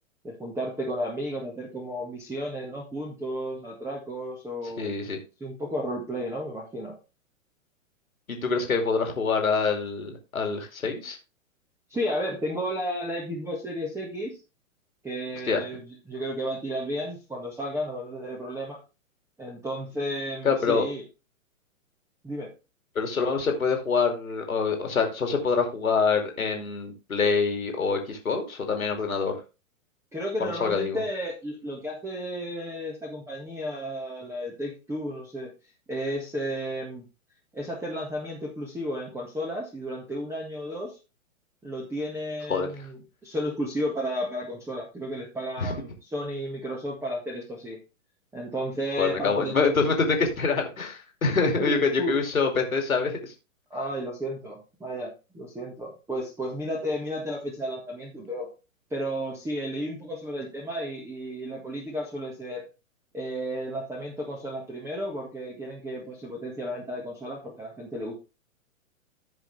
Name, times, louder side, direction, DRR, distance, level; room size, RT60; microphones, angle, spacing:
voice 1, 0.2-5.0 5.4-6.9 11.9-14.4 15.0-15.8 16.1-18.8 19.4-21.0 22.2-22.5 30.1-35.5 35.9-37.1 37.5-41.0 41.6-47.8 48.3-49.7 51.6-52.2 53.7-58.5 58.9-62.6 63.1-68.1, equal, 5° right, -1 dB, 1.8 m, -33 dB
voice 2, 4.8-5.2 8.3-11.2 15.5-15.6 20.4-20.8 22.9-29.3 30.4-31.0 42.5-42.7 45.6-45.7 49.0-53.3, left 5 dB, 80° left, 3 dB, 2.7 m, -25 dB
15.5 x 5.2 x 3.3 m, 0.29 s
figure-of-eight pair, 120°, 41 cm